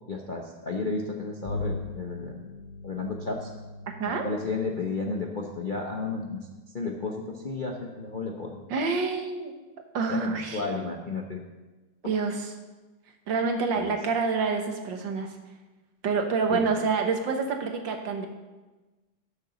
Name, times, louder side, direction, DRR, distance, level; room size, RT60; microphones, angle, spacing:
voice 1, 0.1-2.4 2.8-3.5 4.1-6.5 6.7-8.8 10.1-11.4 13.8-13.9 16.5-16.7, left 3 dB, 40° left, 0 dB, 0.7 m, -33 dB
Bowed string instrument, 1.4-7.1, left 3 dB, 60° left, 2.6 m, -40 dB
voice 2, 8.7-9.5 9.9-10.7 12.0-12.5 13.3-15.4 16.0-18.3, right 4 dB, 70° right, 5 dB, 1.8 m, -27 dB
10.5 x 7.2 x 6.9 m, 1.2 s
omnidirectional pair, 2.2 m